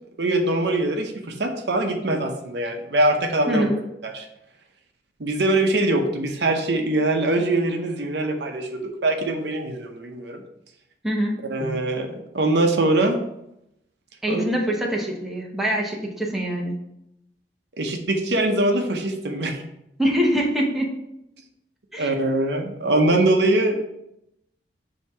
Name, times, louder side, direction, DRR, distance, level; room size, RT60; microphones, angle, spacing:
voice 1, 0.2-3.7 4.0-4.3 5.2-10.4 11.5-13.2 14.3-14.4 17.8-19.6 22.0-23.8, right 2 dB, 70° right, 4 dB, 0.8 m, -22 dB
voice 2, 3.5-3.8 11.0-11.4 14.2-16.8 20.0-21.0 21.9-22.1, equal, ahead, -2 dB, 0.9 m, -24 dB
7.1 x 2.9 x 4.6 m, 0.81 s
head